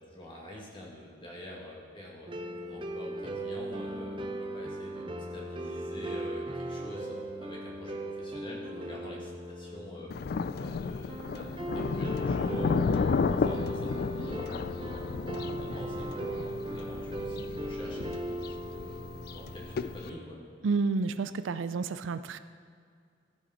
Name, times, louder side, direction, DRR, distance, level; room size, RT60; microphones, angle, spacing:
voice 1, 0.1-10.1 10.6-12.9 13.3-15.0 15.6-20.4, left 1 dB, 25° left, -3 dB, 1.9 m, -46 dB
sound 1, 2.3-20.3, right 1 dB, 25° right, 0.6 m, -38 dB
Thunder, 10.1-20.1, left 5 dB, 50° left, 0.3 m, -32 dB
voice 2, 20.6-22.4, right 4 dB, 80° right, 12 dB, 0.4 m, -30 dB
14.0 x 6.9 x 4.3 m, 2.2 s
head